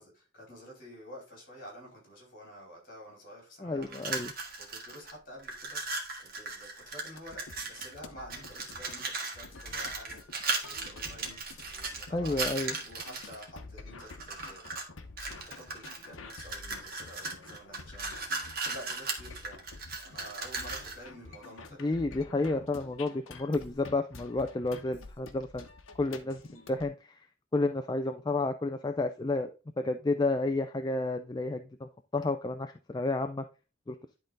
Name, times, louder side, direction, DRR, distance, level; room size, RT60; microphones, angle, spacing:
voice 1, 0.0-4.0 4.6-11.4 11.7-12.4 12.8-14.7 15.2-19.7 20.0-22.0, equal, 40° left, 4.4 m, -50 dB
voice 2, 3.6-4.3 12.1-12.7 21.8-25.7 26.0-27.2 27.5-29.5 29.8-33.4 33.9-34.0, left 2 dB, 20° left, 0.3 m, -31 dB
sound 1, 3.8-5.1 5.4-8.0 8.3-13.4 14.0-14.9 15.2-21.0, right 4 dB, 45° right, 1.7 m, -37 dB
sound 2, 7.2-26.9, left 3 dB, 80° left, 1.0 m, -49 dB
11.0 x 3.9 x 3.8 m
head